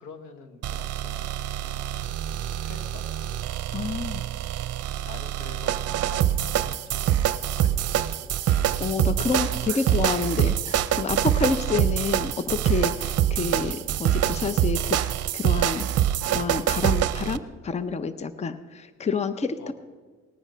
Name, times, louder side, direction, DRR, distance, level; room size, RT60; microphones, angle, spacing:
voice 1, 0.0-3.6 4.7-8.7 9.7-10.2 19.6-19.7, left 4 dB, 85° left, 9 dB, 1.4 m, -47 dB
sound 1, 0.6-17.4, right 11 dB, 55° right, 0.6 m, -25 dB
voice 2, 3.7-4.2 8.4-15.0 15.3-15.9 16.3-19.7, left 4 dB, 25° left, 13 dB, 0.6 m, -29 dB
19.0 x 9.0 x 5.6 m, 1.4 s
cardioid pair, 105°, 29 cm